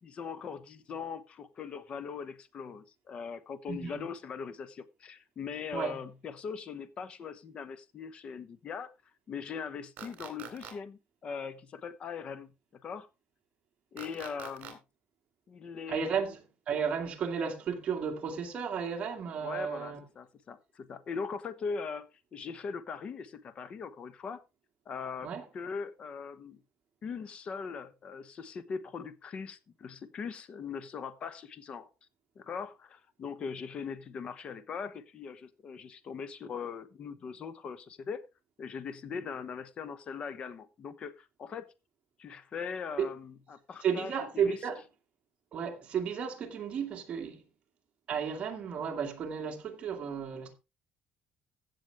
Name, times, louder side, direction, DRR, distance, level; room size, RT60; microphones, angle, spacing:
voice 1, 0.0-8.9 9.3-13.1 13.9-14.8 15.5-16.2 19.4-24.4 24.9-26.6 27.0-31.9 32.4-38.2 38.6-41.7 42.2-44.6, left 6 dB, 35° left, 1.0 m, -40 dB
voice 2, 3.7-4.0 5.7-6.0 15.9-16.4 16.7-20.0 25.2-25.4 43.0-43.1 43.8-44.8 45.5-47.4 48.1-50.5, right 7 dB, 35° right, 2.3 m, -33 dB
sound 1, 10.0-10.7 14.0-14.7, right 8 dB, 60° right, 3.3 m, -44 dB
15.5 x 7.0 x 3.5 m
cardioid pair, 165°, 3 cm